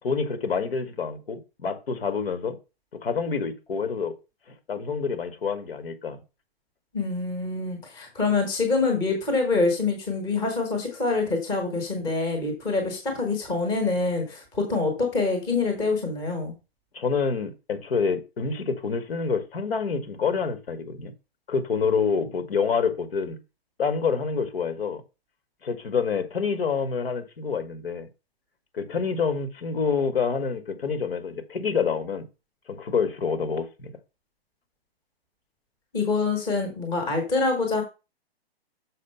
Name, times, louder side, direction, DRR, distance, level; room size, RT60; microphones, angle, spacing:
voice 1, 0.0-2.5 3.0-4.1 4.7-6.2 16.9-21.1 21.5-23.4 23.8-25.0 25.6-28.1 28.7-32.3 32.7-33.9, left 5 dB, 70° left, 1.7 m, -27 dB
voice 2, 6.9-16.5 35.9-37.8, left 3 dB, 10° left, 1.1 m, -25 dB
6.5 x 4.9 x 5.5 m
hypercardioid pair, 175°, 31 cm